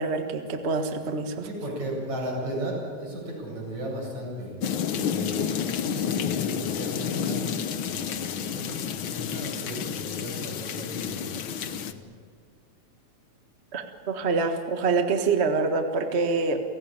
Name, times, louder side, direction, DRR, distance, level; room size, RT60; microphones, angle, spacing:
voice 1, 0.0-1.5 13.7-16.6, right 4 dB, 30° right, 5 dB, 1.2 m, -26 dB
voice 2, 1.4-12.0, equal, 70° right, -2 dB, 9.3 m, -35 dB
sound 1, 4.6-11.9, left 8 dB, 65° left, 1.3 m, -30 dB
29.5 x 17.5 x 9.0 m, 2.1 s
omnidirectional pair, 3.3 m